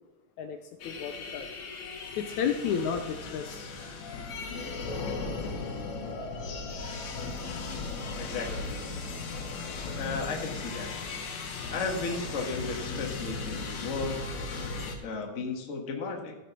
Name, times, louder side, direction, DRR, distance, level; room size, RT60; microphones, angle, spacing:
voice 1, 0.8-1.5 2.2-3.7, left 7 dB, 80° left, 7 dB, 1.9 m, -31 dB
sound 1, 0.8-15.0, left 4 dB, 65° left, 2.6 m, -37 dB
voice 2, 8.2-8.7 9.9-10.9 11.7-14.3 14.7-16.3, left 4 dB, 40° left, 2 dB, 1.1 m, -34 dB
14.5 x 6.8 x 6.0 m, 1.1 s
omnidirectional pair, 3.8 m